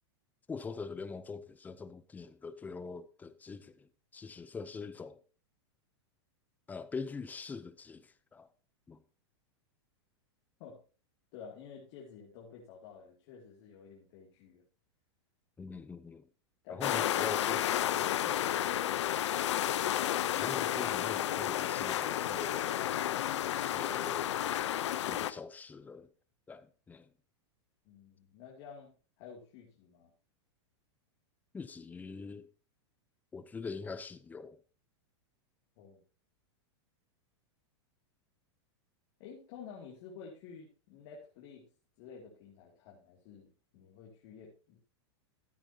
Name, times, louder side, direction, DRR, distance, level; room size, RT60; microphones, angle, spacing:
voice 1, 0.5-5.2 6.7-8.5 8.9-9.0 15.6-16.3 16.7-17.6 18.2-18.4 20.4-22.8 23.7-24.4 25.0-26.1 26.5-27.1 31.5-32.5 33.3-34.6, left 4 dB, 10° left, 0.7 m, -43 dB
voice 2, 11.3-14.6 16.6-17.2 17.9-18.2 27.8-30.1 35.8-36.0 39.2-41.7 42.0-44.8, left 6 dB, 50° left, 2.6 m, -51 dB
sound 1, 16.8-25.3, left 12 dB, 80° left, 0.7 m, -32 dB
13.5 x 8.9 x 2.9 m
supercardioid pair, 140°, 15 cm